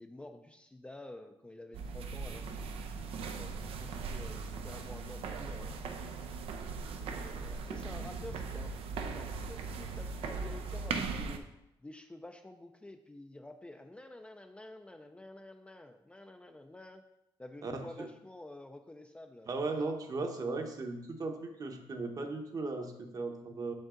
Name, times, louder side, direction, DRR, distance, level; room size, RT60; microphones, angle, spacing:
voice 1, 0.0-5.8 6.9-8.7 9.1-11.5 11.8-17.0 17.4-19.5, left 1 dB, 10° left, 5 dB, 0.4 m, -50 dB
sound 1, 1.7-11.4, right 4 dB, 80° right, 0.6 m, -39 dB
voice 2, 17.6-18.1 19.5-23.7, right 3 dB, 40° right, 4 dB, 0.9 m, -37 dB
6.6 x 5.3 x 3.7 m, 0.88 s
cardioid pair, 105°, 10 cm